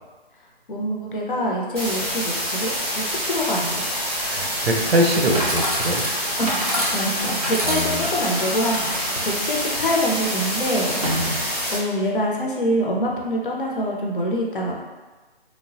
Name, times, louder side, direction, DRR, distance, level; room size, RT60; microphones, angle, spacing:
voice 1, 0.7-3.9 6.4-14.7, equal, 55° left, -1 dB, 0.6 m, -25 dB
sound 1, 1.7-11.7, equal, 5° right, 0.7 m, -27 dB
voice 2, 4.2-6.0 7.6-8.0 11.2-11.4, equal, 80° right, 1 dB, 0.7 m, -23 dB
Chatter / Coin (dropping), 4.8-11.8, equal, 40° right, 0.4 m, -30 dB
3.2 x 2.0 x 2.6 m, 1.3 s
hypercardioid pair, 175°, 31 cm